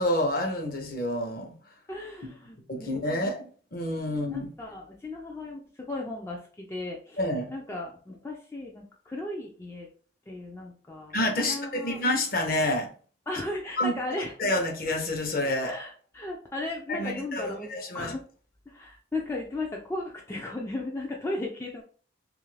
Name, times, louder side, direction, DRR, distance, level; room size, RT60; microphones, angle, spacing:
voice 1, 0.0-1.5 2.7-4.5 7.2-7.5 11.1-12.9 13.8-13.9 14.4-15.7 16.9-18.1, left 1 dB, 50° left, 0.7 m, -28 dB
voice 2, 1.9-3.3 4.3-7.2 7.5-9.9 10.3-12.0 13.3-14.3 15.7-17.7 17.9-18.2 18.7-21.8, left 2 dB, 15° left, 0.3 m, -36 dB
2.7 x 2.4 x 3.1 m
head